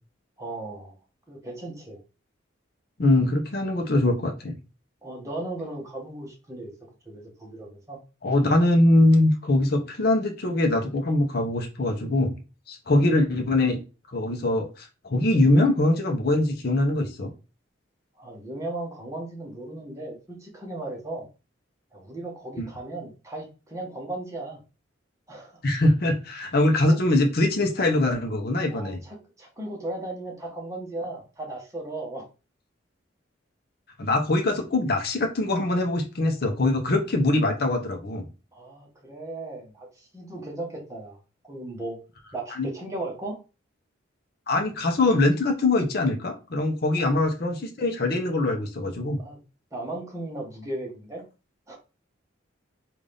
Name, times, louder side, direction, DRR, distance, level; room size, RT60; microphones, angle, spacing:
voice 1, 0.4-1.0 1.3-2.0 5.0-6.7 7.0-8.0 12.9-13.1 18.2-21.3 21.9-24.6 25.3-25.5 28.7-32.3 38.5-41.2 41.4-42.0 42.3-43.4 47.0-47.3 49.2-49.4 49.7-51.2 51.7-51.8, right 2 dB, 15° right, -1 dB, 1.1 m, -36 dB
voice 2, 3.0-4.6 8.2-12.3 12.7-13.8 14.1-17.3 22.6-22.7 25.6-29.0 34.0-38.2 42.6-42.7 44.5-49.2, left 2 dB, 50° left, 3 dB, 0.7 m, -22 dB
3.8 x 2.5 x 3.3 m, 0.31 s
head